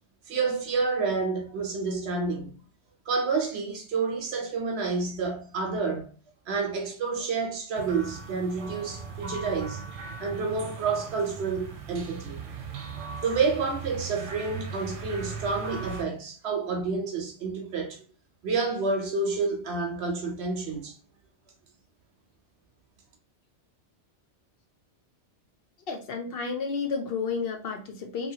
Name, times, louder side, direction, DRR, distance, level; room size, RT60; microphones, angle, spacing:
voice 1, 0.3-2.5 3.1-6.1 6.5-9.8 10.2-12.4 13.2-18.0 18.4-21.0, right 4 dB, 65° right, 1.0 m, -29 dB
sound 1, 7.7-16.0, right 5 dB, 90° right, 1.0 m, -39 dB
voice 2, 25.9-28.3, left 5 dB, 60° left, 0.7 m, -31 dB
2.8 x 2.7 x 2.7 m
omnidirectional pair, 1.2 m